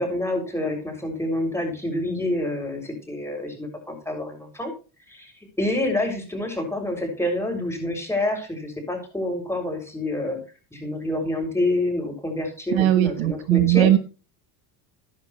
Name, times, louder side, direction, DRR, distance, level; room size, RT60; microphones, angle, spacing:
voice 1, 0.0-4.7 5.1-5.3 5.6-10.4 10.7-13.9, left 1 dB, 5° left, 2 dB, 6.8 m, -27 dB
voice 2, 12.7-14.0, right 14 dB, 65° right, 12 dB, 1.3 m, -19 dB
13.5 x 11.0 x 3.2 m, 0.34 s
supercardioid pair, 90°, 50 cm